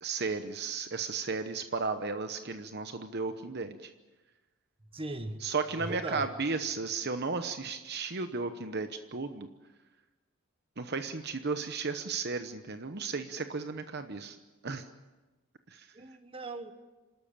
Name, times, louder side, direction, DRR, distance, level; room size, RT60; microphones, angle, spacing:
voice 1, 0.0-3.9 5.4-9.5 10.8-14.4 14.6-14.8 15.7-15.9, right 4 dB, 50° right, 8 dB, 1.0 m, -34 dB
voice 2, 4.9-5.4 5.8-6.3 15.9-16.7, right 2 dB, 25° right, 9 dB, 1.4 m, -38 dB
27.5 x 13.0 x 8.9 m, 1.1 s
head